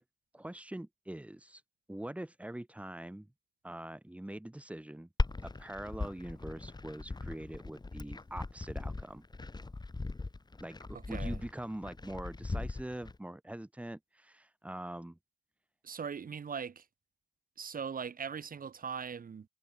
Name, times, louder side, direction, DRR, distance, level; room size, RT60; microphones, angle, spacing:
voice 1, 0.3-1.6 1.9-3.3 3.6-5.1 5.4-9.2 10.6-15.2, right 1 dB, 5° right, 6.1 m, -43 dB
Glass, 5.2-13.2, left 3 dB, 20° left, 6.6 m, -38 dB
voice 2, 10.9-11.4 15.8-16.9 17.6-19.5, right 6 dB, 45° right, 6.6 m, -40 dB
cardioid pair, 90°, 20 cm